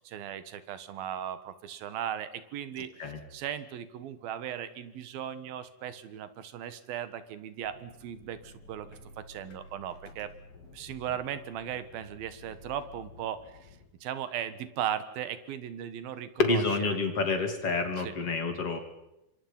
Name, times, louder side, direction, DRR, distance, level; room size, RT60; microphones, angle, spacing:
voice 1, 0.0-2.9 3.3-8.9 9.2-10.3 10.7-16.6 18.0-18.2, right 10 dB, 90° right, 13 dB, 3.4 m, -37 dB
sound 1, 7.6-13.9, left 2 dB, 80° left, 5.5 m, -52 dB
voice 2, 16.4-18.8, left 3 dB, 40° left, 6 dB, 3.7 m, -28 dB
27.0 x 25.0 x 5.6 m, 0.88 s
omnidirectional pair, 4.1 m